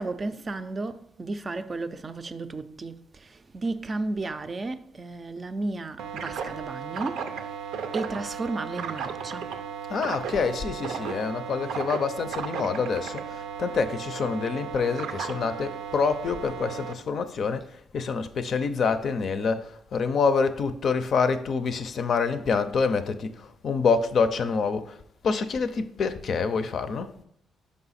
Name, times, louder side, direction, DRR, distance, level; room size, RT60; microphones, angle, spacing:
voice 1, 0.0-7.3 7.9-9.5, right 3 dB, 35° right, 0.4 m, -33 dB
sound 1, 6.0-16.9, right 7 dB, 85° right, 0.5 m, -35 dB
voice 2, 9.9-27.1, left 5 dB, 55° left, 0.5 m, -27 dB
5.4 x 4.8 x 4.1 m
cardioid pair, 90°, 0 cm